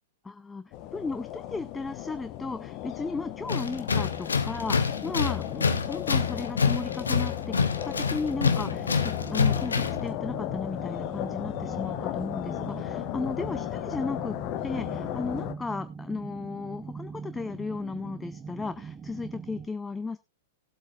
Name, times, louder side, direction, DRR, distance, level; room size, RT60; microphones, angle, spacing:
voice 1, 0.2-14.4 14.6-20.2, left 4 dB, 10° left, 13 dB, 0.5 m, -35 dB
sound 1, 0.7-15.5, left 13 dB, 35° left, 0.9 m, -35 dB
sound 2, 3.2-19.7, right 5 dB, 20° right, 0.9 m, -44 dB
Tools, 3.5-10.1, left 5 dB, 70° left, 1.0 m, -27 dB
20.0 x 8.1 x 2.4 m, 0.24 s
figure-of-eight pair, 100°, 0 cm